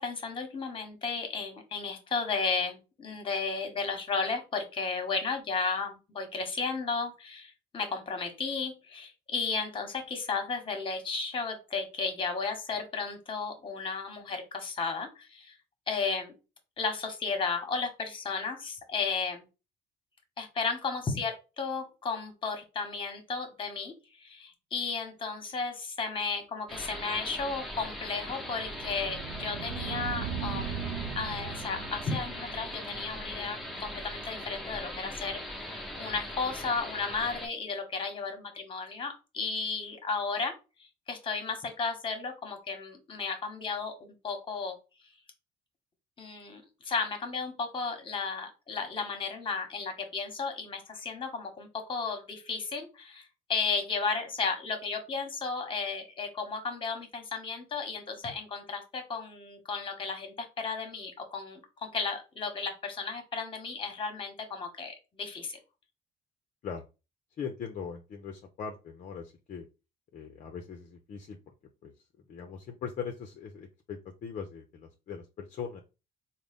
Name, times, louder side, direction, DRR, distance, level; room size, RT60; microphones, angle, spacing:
voice 1, 0.0-15.6 15.9-16.3 16.8-19.4 20.4-30.8 31.1-35.7 36.0-44.7 46.2-65.6, left 4 dB, 30° left, 6 dB, 1.1 m, -34 dB
sound 1, 26.7-37.5, left 1 dB, ahead, 0.9 m, -40 dB
sound 2, 27.6-34.4, right 8 dB, 75° right, 0.4 m, -40 dB
voice 2, 67.4-69.7 70.1-71.4 71.8-75.8, left 6 dB, 45° left, 4 dB, 0.6 m, -40 dB
3.8 x 2.1 x 3.5 m, 0.29 s
cardioid pair, 110°, 17 cm